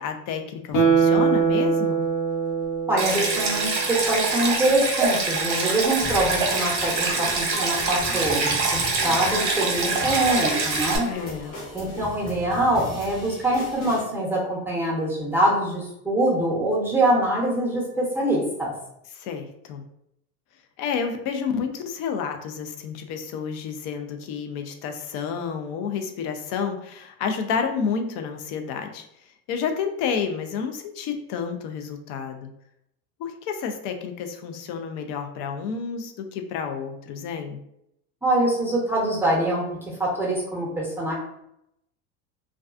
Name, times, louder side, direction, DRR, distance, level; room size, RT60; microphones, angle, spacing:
voice 1, 0.0-2.0 11.0-11.6 19.1-19.8 20.8-29.1 29.5-32.5 33.2-37.6, left 6 dB, 50° left, 6 dB, 0.5 m, -30 dB
Guitar, 0.7-4.0 4.4-4.5, right 6 dB, 70° left, 0.8 m, -22 dB
voice 2, 2.9-8.6 9.0-11.1 11.7-18.7 38.2-39.6 40.0-41.1, right 1 dB, 5° right, -5 dB, 0.7 m, -24 dB
Stream, 3.0-11.0, right 3 dB, 40° right, 0.8 m, -25 dB
sound 1, 6.0-14.0, left 1 dB, 30° left, 1.0 m, -36 dB
2.3 x 2.3 x 2.4 m, 0.78 s
supercardioid pair, 105°, 43 cm